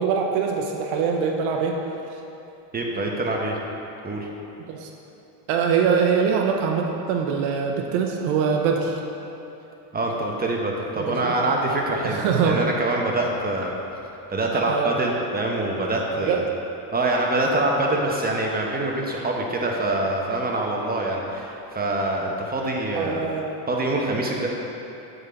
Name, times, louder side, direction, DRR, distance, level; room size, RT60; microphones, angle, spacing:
voice 1, 0.0-1.8 4.7-4.9 5.5-9.0 11.0-11.3 12.0-12.6 14.5-14.9 16.2-16.4 23.0-23.5, right 6 dB, 85° right, 1 dB, 0.7 m, -23 dB
voice 2, 2.7-3.6 4.0-4.3 9.9-13.8 14.3-16.4 16.9-23.2 23.7-24.5, right 2 dB, 20° right, -1 dB, 1.0 m, -25 dB
7.7 x 4.0 x 4.4 m, 3.0 s
supercardioid pair, 95°, 46 cm